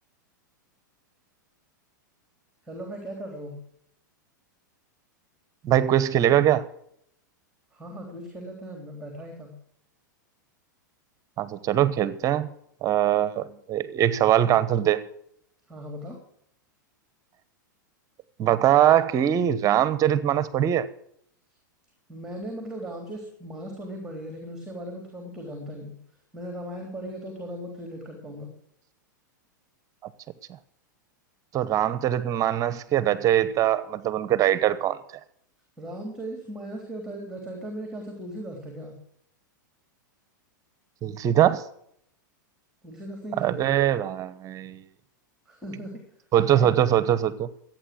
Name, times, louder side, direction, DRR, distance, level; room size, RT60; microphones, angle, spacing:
voice 1, 2.6-3.6 7.7-9.5 15.7-16.2 22.1-26.0 26.3-28.5 35.8-39.0 42.8-43.7 45.5-46.0 46.4-46.8, right 1 dB, 5° right, 3.5 m, -38 dB
voice 2, 5.6-6.7 11.4-12.5 12.8-15.1 18.4-20.9 31.5-35.0 41.0-41.6 43.4-44.8 46.3-47.5, right 11 dB, 30° right, 1.0 m, -22 dB
14.0 x 9.1 x 7.7 m
hypercardioid pair, 115°, 11 cm